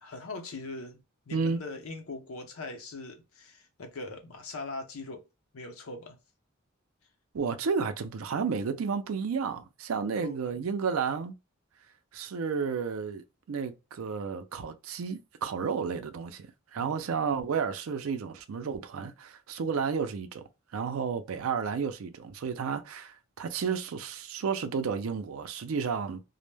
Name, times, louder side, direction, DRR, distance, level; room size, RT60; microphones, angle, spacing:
voice 1, 0.0-1.0 1.3-5.2 5.5-6.2 10.1-10.7 16.8-17.3, left 3 dB, 90° left, 0.6 m, -41 dB
voice 2, 7.3-11.3 12.1-20.4 20.7-26.2, right 6 dB, 80° right, 0.4 m, -32 dB
2.1 x 2.0 x 3.1 m
head